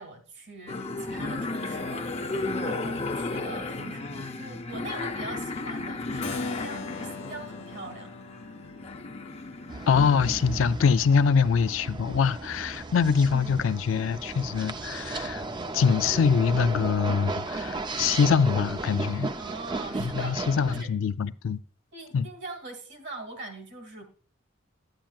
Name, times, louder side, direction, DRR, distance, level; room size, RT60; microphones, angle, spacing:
voice 1, 0.0-8.1 13.3-13.5 19.4-20.9 21.9-24.0, right 3 dB, 60° right, 1.9 m, -42 dB
sound 1, 0.7-10.6, left 2 dB, 30° left, 0.6 m, -34 dB
Keyboard (musical), 6.2-12.1, left 5 dB, 70° left, 1.1 m, -44 dB
sound 2, 9.7-20.8, right 3 dB, 25° right, 0.5 m, -35 dB
voice 2, 9.9-15.4 15.7-19.3 20.0-21.6 22.1-22.3, left 6 dB, 85° left, 0.4 m, -24 dB
11.5 x 8.9 x 2.3 m
head